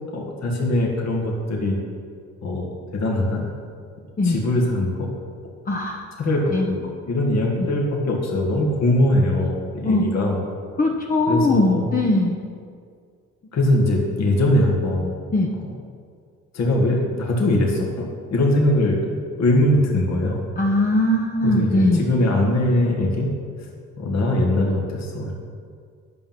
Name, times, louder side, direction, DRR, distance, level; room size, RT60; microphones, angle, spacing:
voice 1, 0.1-1.8 2.4-3.5 4.2-5.1 6.2-10.4 11.3-11.8 13.5-15.1 16.5-19.0 19.4-20.4 21.4-23.3 24.0-25.3, left 1 dB, 60° left, -1 dB, 2.0 m, -21 dB
voice 2, 5.7-6.1 6.5-6.7 9.8-10.0 10.8-12.4 15.3-15.5 20.6-22.1, left 2 dB, 30° left, 0 dB, 0.9 m, -20 dB
10.5 x 5.8 x 7.4 m, 2.1 s
cardioid pair, 90°, 30 cm